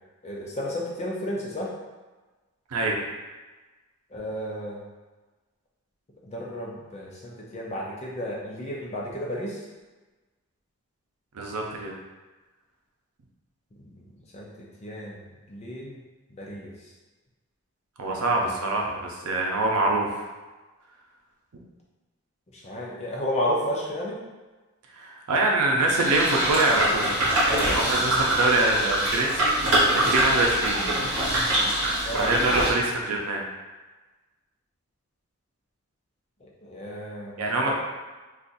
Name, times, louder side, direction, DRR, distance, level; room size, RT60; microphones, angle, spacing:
voice 1, 0.2-1.7 4.1-4.8 6.2-9.6 13.8-14.0 14.3-16.0 16.3-16.7 18.4-19.0 22.5-24.2 32.1-32.4 36.4-37.4 37.7-37.8, equal, 30° left, -3 dB, 0.5 m, -33 dB
voice 2, 11.3-11.9 18.0-20.2 25.0-27.1 27.6-30.8 32.1-33.4 37.4-37.7, right 2 dB, 85° right, 0 dB, 0.6 m, -24 dB
sound 1, 25.9-32.7, right 1 dB, 55° right, 1.1 m, -24 dB
2.5 x 2.4 x 3.9 m, 1.2 s
head